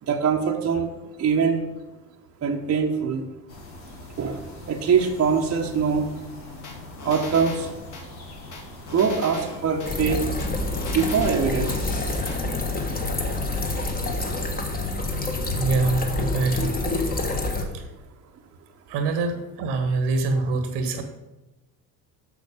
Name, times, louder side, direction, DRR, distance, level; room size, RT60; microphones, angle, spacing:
voice 1, 0.1-0.9 1.2-1.6 2.4-3.2 4.2-4.4 4.7-6.1 7.0-7.7 8.9-10.2 10.9-11.7, right 6 dB, 30° right, 2 dB, 1.0 m, -22 dB
sound 1, 3.5-14.4, left 2 dB, 85° left, 1.6 m, -42 dB
sound 2, 6.6-8.1 8.5-9.9 10.4-11.8 12.3-12.4, left 3 dB, 35° left, 1.7 m, -39 dB
sound 3, 9.8-17.6, left 2 dB, 20° left, 1.3 m, -27 dB
voice 2, 15.5-16.8 17.7-17.9 18.9-21.0, right 3 dB, 55° right, 7 dB, 1.3 m, -25 dB
7.1 x 6.3 x 5.0 m, 1.1 s
hypercardioid pair, 65°, 50 cm